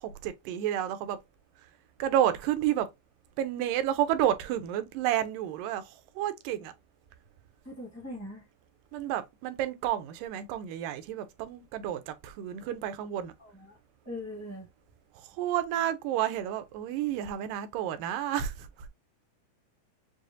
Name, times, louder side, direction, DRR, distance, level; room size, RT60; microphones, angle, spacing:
voice 1, 0.0-1.2 2.0-2.9 3.4-6.7 8.9-13.3 15.1-18.9, right 11 dB, 85° right, 2.2 m, -30 dB
voice 2, 7.6-8.5 13.4-13.8 14.0-14.7, left 1 dB, 10° left, 0.7 m, -41 dB
6.3 x 2.4 x 2.6 m
omnidirectional pair, 3.8 m